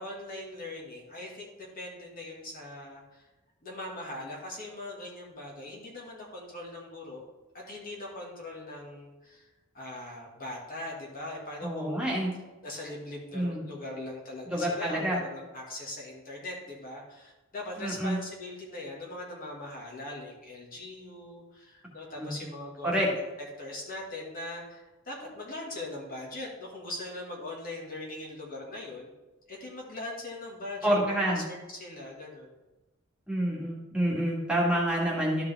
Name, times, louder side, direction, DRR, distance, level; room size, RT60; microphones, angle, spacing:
voice 1, 0.0-3.2 3.6-7.3 7.5-9.4 9.7-12.1 12.6-29.1 29.5-32.5, left 2 dB, 45° left, -2 dB, 2.0 m, -41 dB
voice 2, 11.6-12.4 13.3-13.6 14.5-15.2 17.8-18.2 22.2-22.3 22.8-23.1 30.8-31.4 33.3-35.4, right 1 dB, 5° right, -5 dB, 2.0 m, -28 dB
12.5 x 5.0 x 3.5 m, 1.1 s
head